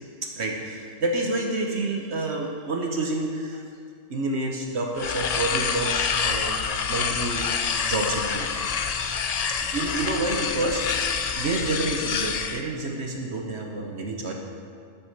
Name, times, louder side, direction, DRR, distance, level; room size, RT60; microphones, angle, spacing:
voice 1, 0.2-3.6 4.1-6.6 6.9-7.5 7.8-8.5 9.5-14.3, right 2 dB, 65° right, 1 dB, 1.1 m, -29 dB
sound 1, 5.0-12.6, left 6 dB, 75° left, 0.3 m, -27 dB
8.6 x 7.2 x 6.5 m, 2.3 s
omnidirectional pair, 1.3 m